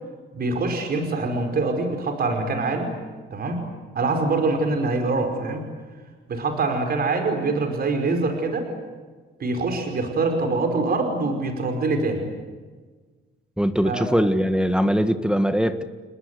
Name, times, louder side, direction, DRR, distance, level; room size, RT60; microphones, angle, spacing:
voice 1, 0.3-2.9 3.3-3.6 4.0-5.7 6.3-8.7 9.4-12.2 13.8-14.0, right 3 dB, 50° right, 5 dB, 5.3 m, -24 dB
voice 2, 13.6-15.8, equal, 5° right, 9 dB, 1.6 m, -21 dB
30.0 x 20.5 x 9.7 m, 1.4 s
cardioid pair, 90°, 20 cm